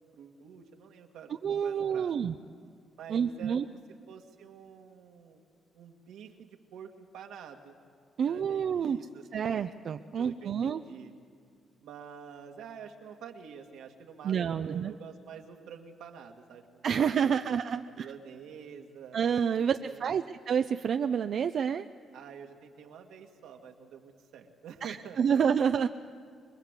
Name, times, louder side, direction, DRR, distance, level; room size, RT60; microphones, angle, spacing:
voice 1, 0.1-1.3 1.6-2.1 3.0-3.8 4.1-5.4 5.7-7.8 8.3-9.6 10.2-11.1 11.8-17.5 17.9-19.2 19.6-20.4 22.1-25.4, right 7 dB, 85° right, 3 dB, 2.1 m, -48 dB
voice 2, 1.4-2.3 3.1-3.7 8.2-9.0 9.3-10.8 14.2-14.9 16.8-18.1 19.1-21.9 24.8-25.9, right 7 dB, 60° right, 8 dB, 0.6 m, -28 dB
25.0 x 21.5 x 8.3 m, 2.2 s
cardioid pair, 90°, 0 cm